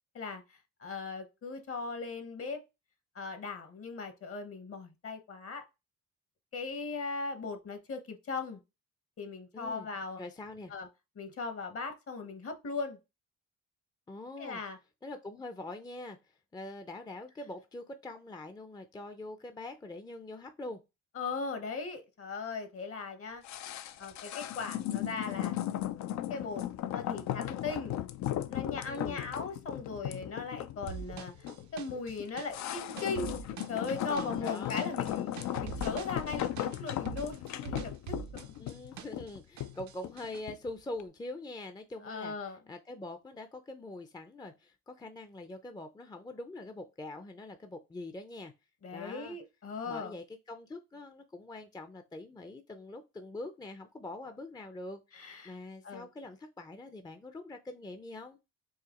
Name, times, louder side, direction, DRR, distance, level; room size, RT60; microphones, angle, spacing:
voice 1, 0.8-2.6 3.1-5.7 6.5-8.6 9.2-10.2 10.7-10.9 11.2-13.0 14.4-14.8 21.1-23.4 24.0-25.6 26.3-28.0 28.5-31.3 31.7-33.4 33.7-35.3 35.6-38.5 42.0-42.6 48.8-50.1 55.1-55.5 55.8-56.1, left 4 dB, 50° left, 1.1 m, -38 dB
voice 2, 9.5-9.9 10.2-10.7 14.1-14.6 15.0-16.2 16.5-20.8 28.9-29.3 34.1-34.9 38.6-48.5 48.9-49.4 49.9-58.4, left 2 dB, 15° left, 0.5 m, -44 dB
sound 1, 23.4-40.7 41.0-41.1, left 12 dB, 65° left, 0.5 m, -36 dB
sound 2, 30.9-39.3 39.6-40.4, right 9 dB, 70° right, 0.6 m, -44 dB
4.8 x 2.8 x 2.9 m
cardioid pair, 90°, 30 cm